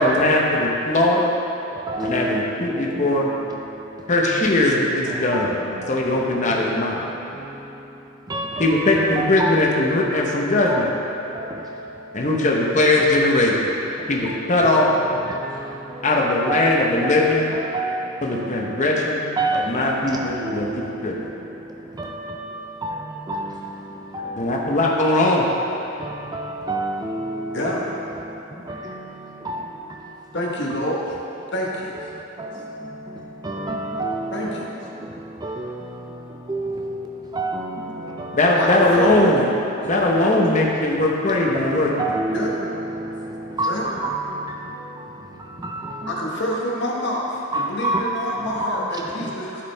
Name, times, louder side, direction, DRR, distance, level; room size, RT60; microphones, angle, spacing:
voice 1, 0.0-1.4 2.0-3.3 4.1-5.6 5.9-7.0 8.6-10.9 12.1-13.7 14.1-14.9 16.0-17.4 18.2-19.3 19.7-21.1 24.4-25.5 38.3-39.4 39.9-41.9, left 2 dB, 35° left, -1 dB, 0.8 m, -19 dB
voice 2, 1.6-4.8 5.0-12.4 13.9-19.0 19.4-25.2 25.8-30.4 30.7-30.9 31.9-38.6 39.7-40.2 40.5-40.8 41.3-46.6 47.5-49.6, right 2 dB, 20° right, 1 dB, 0.3 m, -31 dB
voice 3, 30.3-31.1 31.5-31.9 34.3-34.7 38.6-39.4 42.3-42.5 43.4-43.8 46.1-49.6, left 1 dB, 50° left, -3 dB, 1.1 m, -27 dB
11.5 x 4.9 x 3.3 m, 3.0 s
head